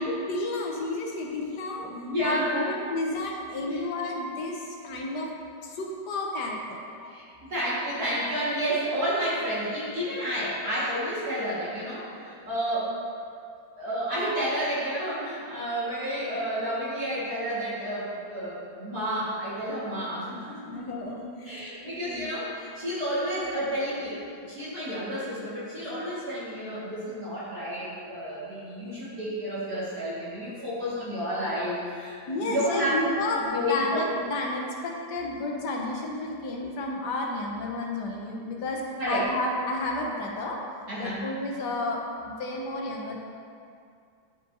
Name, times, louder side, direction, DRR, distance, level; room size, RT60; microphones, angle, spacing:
voice 1, 0.0-1.9 2.2-5.3 5.6-7.1 20.7-22.3 32.3-40.6 41.0-43.2, left 2 dB, 65° left, -1 dB, 1.4 m, -32 dB
voice 2, 1.9-2.7 3.6-3.8 7.1-13.2 13.8-20.8 21.5-34.0 39.0-39.3 40.9-41.2, equal, 55° right, -10 dB, 2.1 m, -30 dB
11.0 x 5.1 x 2.6 m, 2.3 s
omnidirectional pair, 2.1 m